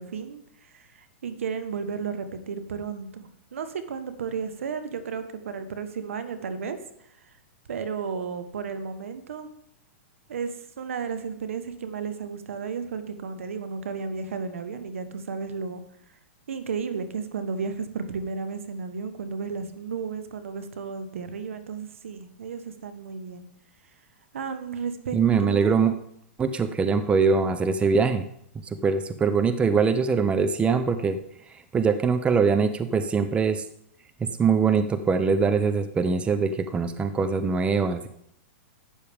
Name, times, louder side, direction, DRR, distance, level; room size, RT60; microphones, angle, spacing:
voice 1, 0.0-6.8 7.7-9.5 10.3-15.8 16.5-23.5 24.3-25.8, right 5 dB, 80° right, 11 dB, 1.2 m, -33 dB
voice 2, 25.1-25.9 26.4-28.2 28.8-31.2 31.7-33.6 34.4-38.1, right 5 dB, 15° right, 10 dB, 0.7 m, -22 dB
12.0 x 8.5 x 3.6 m, 0.72 s
hypercardioid pair, 120°, 7 cm